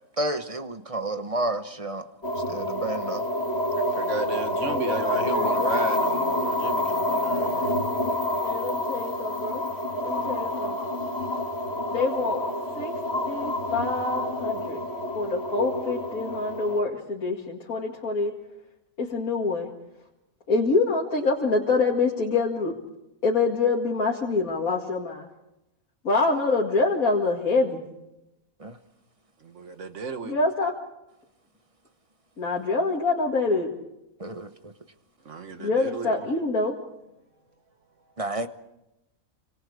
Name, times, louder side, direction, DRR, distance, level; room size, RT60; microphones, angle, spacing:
voice 1, 0.2-2.1 2.5-3.2 28.6-28.8 34.2-34.7 38.2-38.5, right 2 dB, 25° right, 1.0 m, -30 dB
sound 1, 2.2-16.8, left 1 dB, 45° left, 2.2 m, -28 dB
voice 2, 4.0-7.7 29.6-30.3 35.3-36.2, right 5 dB, 60° right, 1.6 m, -33 dB
voice 3, 4.6-5.7 8.4-9.6 10.0-10.8 11.9-12.5 12.7-12.9 13.3-14.8 15.1-18.4 19.0-19.7 20.5-22.7 23.2-25.3 26.0-27.8 30.2-30.7 32.4-33.7 35.6-36.8, left 3 dB, 80° left, 2.6 m, -26 dB
29.0 x 25.5 x 4.9 m
omnidirectional pair, 1.5 m